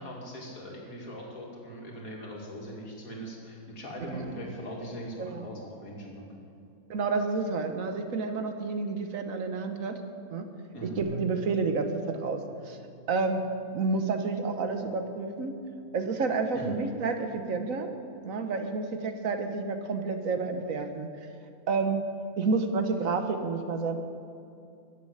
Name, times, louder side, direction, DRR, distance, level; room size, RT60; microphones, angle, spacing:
voice 1, 0.0-6.2 10.7-11.0 16.5-16.7, equal, 70° left, -2 dB, 2.9 m, -40 dB
voice 2, 4.1-4.5 5.2-5.5 6.9-10.0 10.3-10.5 10.8-12.8 13.1-13.4 13.7-15.5 15.9-17.9 18.2-21.1 21.7-22.0 22.4-24.0, right 4 dB, 65° right, 6 dB, 1.4 m, -30 dB
Bass guitar, 11.0-15.5 16.3-17.2, right 2 dB, 40° right, 2.1 m, -47 dB
15.0 x 7.6 x 8.7 m, 2.6 s
omnidirectional pair, 1.5 m